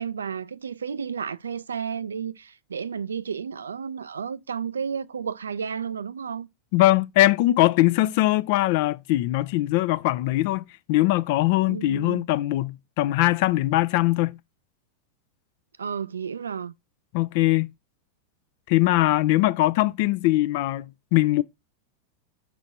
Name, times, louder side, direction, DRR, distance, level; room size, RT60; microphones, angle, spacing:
voice 1, 0.0-6.5 11.6-12.2 15.8-16.7, right 6 dB, 70° right, 0.3 m, -32 dB
voice 2, 6.7-14.4 17.1-17.7 18.7-21.4, left 17 dB, 50° left, 0.4 m, -21 dB
6.1 x 4.1 x 4.0 m
figure-of-eight pair, 90°, 0 cm